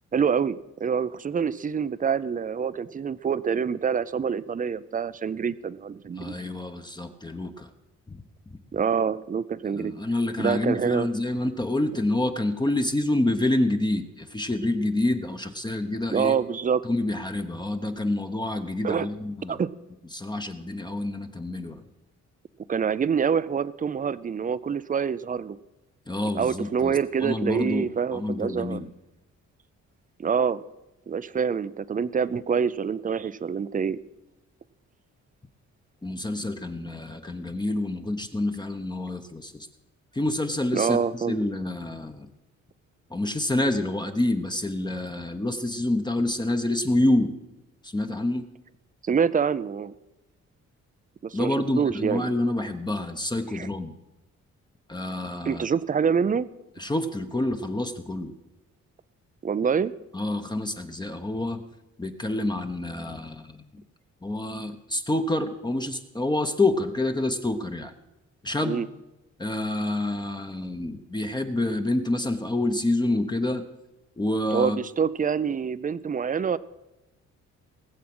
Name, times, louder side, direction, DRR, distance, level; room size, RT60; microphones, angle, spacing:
voice 1, 0.1-6.4 8.7-9.9 10.4-11.1 16.1-16.8 18.8-19.1 19.5-19.7 22.7-25.6 26.3-28.8 30.2-30.6 31.1-34.0 40.7-41.4 49.0-49.9 51.2-51.5 51.8-52.3 53.5-53.7 55.4-56.5 59.4-59.9 68.6-68.9 74.5-76.6, right 6 dB, 25° right, 17 dB, 0.5 m, -26 dB
voice 2, 6.2-7.7 8.1-8.2 9.7-16.4 16.8-19.6 20.1-21.8 26.1-28.9 36.0-39.7 40.1-42.3 43.1-47.3 47.8-48.5 51.3-53.9 54.9-55.7 56.8-58.3 60.1-61.6 62.0-63.8 64.2-67.9 68.4-68.8 69.4-73.6 74.2-74.8, left 1 dB, 15° left, 5 dB, 0.9 m, -27 dB
19.0 x 7.4 x 6.1 m, 1.0 s
cardioid pair, 90°, 30 cm